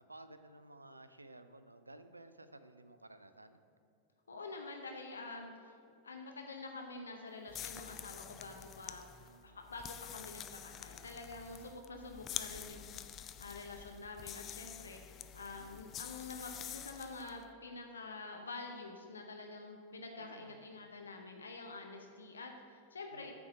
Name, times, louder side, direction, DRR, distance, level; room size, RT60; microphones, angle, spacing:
voice 1, 0.0-3.6 9.2-9.7 12.5-12.9 20.2-20.6 23.1-23.3, right 2 dB, 85° right, 11 dB, 0.4 m, -55 dB
voice 2, 4.3-5.7 6.0-23.3, left 3 dB, 75° left, 3 dB, 0.6 m, -47 dB
sound 1, 7.5-17.4, left 10 dB, 30° left, 0.3 m, -47 dB
8.5 x 4.7 x 6.2 m, 2.4 s
figure-of-eight pair, 90°, 0 cm